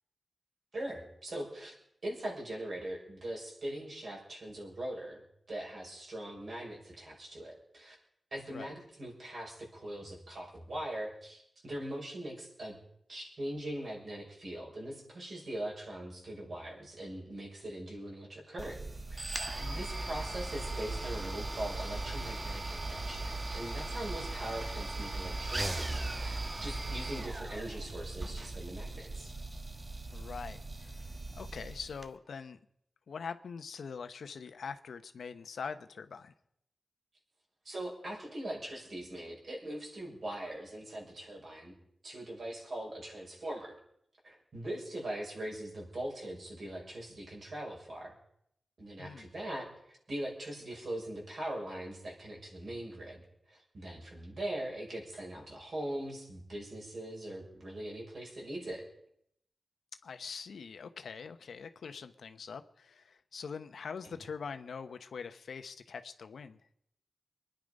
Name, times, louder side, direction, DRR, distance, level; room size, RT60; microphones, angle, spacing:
voice 1, 0.7-1.7 2.0-7.9 8.3-12.8 13.1-18.8 19.1-19.2 19.7-29.3 37.6-41.7 42.0-43.8 44.2-48.1 48.8-58.8, right 1 dB, 60° right, -2 dB, 6.2 m, -41 dB
sound 1, 18.6-32.1, right 2 dB, 30° right, 1.2 m, -38 dB
voice 2, 19.6-19.9 30.1-32.6 33.1-36.3 49.0-49.3 60.0-66.6, left 5 dB, 90° left, 9 dB, 1.0 m, -43 dB
24.5 x 10.5 x 5.3 m, 0.74 s
wide cardioid pair, 85°, 0 cm